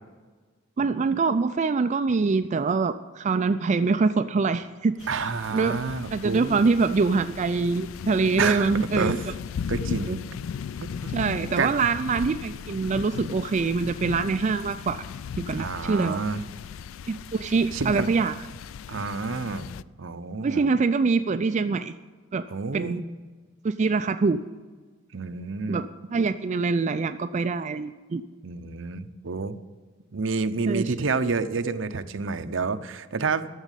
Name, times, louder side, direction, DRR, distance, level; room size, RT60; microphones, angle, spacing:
voice 1, 0.8-5.8 6.1-9.2 10.1-10.2 11.1-15.0 15.4-16.2 17.1-18.4 20.4-21.9 22.3-22.5 22.7-23.0 23.6-24.4 25.7-28.2 30.7-30.9, right 4 dB, 35° right, 10 dB, 0.3 m, -24 dB
sound 1, 5.0-19.8, left 7 dB, 80° left, 0.3 m, -37 dB
voice 2, 5.1-6.6 8.4-9.2 9.7-10.2 10.8-11.1 11.6-11.8 15.6-16.4 17.7-18.1 18.9-19.7 20.0-20.7 22.5-23.0 25.1-25.8 26.1-26.2 28.4-29.6 30.1-33.5, right 4 dB, 65° right, 10 dB, 0.7 m, -29 dB
13.0 x 7.2 x 8.3 m, 1.4 s
head